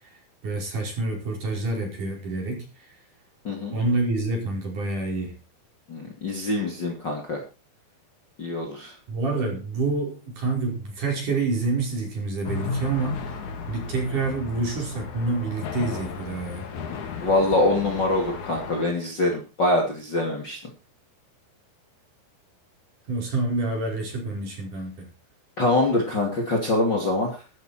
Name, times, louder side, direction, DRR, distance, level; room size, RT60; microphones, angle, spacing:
voice 1, 0.4-2.7 3.7-5.4 9.1-13.3 13.7-16.7 23.1-25.1, right 3 dB, 50° right, 0 dB, 6.6 m, -27 dB
voice 2, 3.4-3.8 5.9-7.4 8.4-8.9 17.2-20.6 25.6-27.4, left 2 dB, 30° left, 1 dB, 2.7 m, -24 dB
sound 1, 12.4-18.8, left 4 dB, 55° left, 3.0 m, -34 dB
13.5 x 13.0 x 4.4 m, 0.31 s
omnidirectional pair, 4.6 m